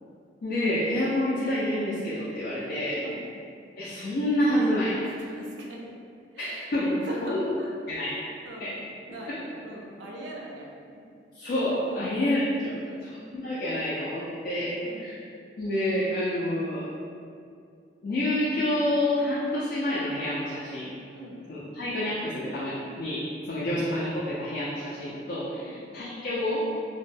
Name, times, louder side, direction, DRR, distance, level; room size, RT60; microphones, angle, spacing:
voice 1, 0.4-3.0 3.8-5.0 6.4-7.4 7.9-8.1 8.6-8.8 9.3-9.4 11.3-12.7 13.0-15.2 15.6-16.9 18.0-20.9 21.5-26.7, left 1 dB, 55° left, -8 dB, 0.4 m, -28 dB
voice 2, 5.0-5.9 6.3-7.8 8.4-8.8 9.1-11.0 11.9-12.1 12.8-13.0 14.8-15.1 21.1-21.4 23.6-23.8 25.6-25.9, right 1 dB, 85° right, -2 dB, 0.4 m, -41 dB
2.1 x 2.1 x 3.1 m, 2.4 s
head